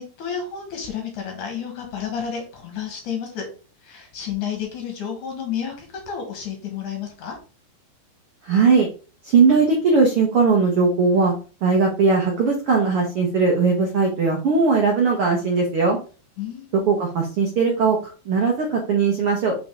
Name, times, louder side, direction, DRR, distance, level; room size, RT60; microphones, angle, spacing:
voice 1, 0.0-3.5 3.8-7.4 16.4-16.7, left 7 dB, 60° left, 2 dB, 2.6 m, -31 dB
voice 2, 8.4-8.9 9.2-11.3 11.6-16.0 16.7-18.0 18.2-19.6, right 4 dB, 75° right, 0 dB, 1.3 m, -19 dB
5.9 x 5.2 x 3.7 m, 0.35 s
omnidirectional pair, 4.4 m